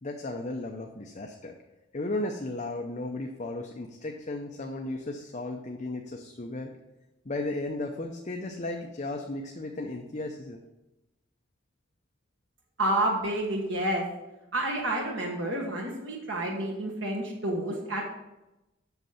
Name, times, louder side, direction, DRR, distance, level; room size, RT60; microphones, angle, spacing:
voice 1, 0.0-1.6 1.9-6.7 7.2-10.6, left 2 dB, 35° left, 2 dB, 0.6 m, -35 dB
voice 2, 12.8-14.0 14.5-18.1, right 1 dB, 65° right, 0 dB, 1.4 m, -29 dB
8.1 x 6.4 x 5.7 m, 0.98 s
head